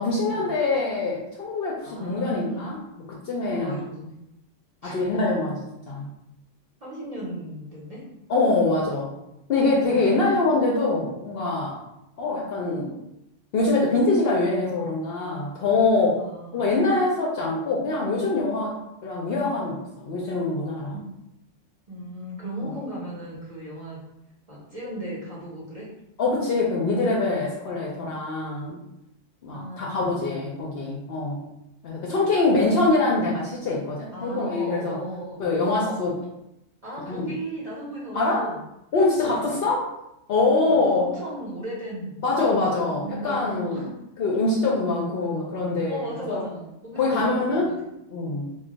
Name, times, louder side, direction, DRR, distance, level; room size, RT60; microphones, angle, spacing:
voice 1, 0.0-2.8 3.2-3.8 4.8-6.1 8.3-9.1 9.5-11.8 12.2-12.9 13.5-16.2 16.5-18.8 19.0-21.0 22.6-22.8 26.2-28.8 29.4-31.4 31.8-35.0 35.4-36.2 37.1-37.3 38.1-38.5 38.9-39.9 40.3-41.1 42.2-43.9 44.2-46.4 47.0-47.7 48.1-48.5, left 3 dB, 65° left, -3 dB, 0.6 m, -24 dB
voice 2, 1.8-2.7 3.6-4.2 4.8-5.0 6.8-8.1 9.7-10.3 16.2-16.7 21.9-24.0 24.5-25.9 29.5-30.5 34.1-35.4 35.8-36.0 36.8-38.6 39.2-39.6 40.6-42.2 43.0-44.0 45.9-47.8, right 1 dB, 40° right, -7 dB, 0.6 m, -36 dB
2.3 x 2.1 x 3.9 m, 0.86 s
omnidirectional pair, 1.3 m